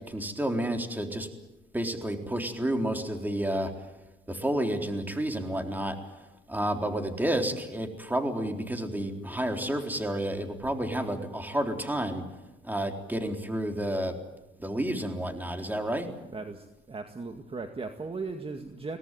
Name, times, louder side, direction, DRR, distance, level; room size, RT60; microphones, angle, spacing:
voice 1, 0.1-1.3 1.7-3.7 4.3-6.0 6.5-12.2 12.6-14.2 14.6-16.1, right 1 dB, 10° right, 4 dB, 3.9 m, -30 dB
voice 2, 16.3-19.0, right 4 dB, 30° right, 6 dB, 2.0 m, -37 dB
23.0 x 18.0 x 9.4 m, 1.0 s
cardioid pair, 90°, 20 cm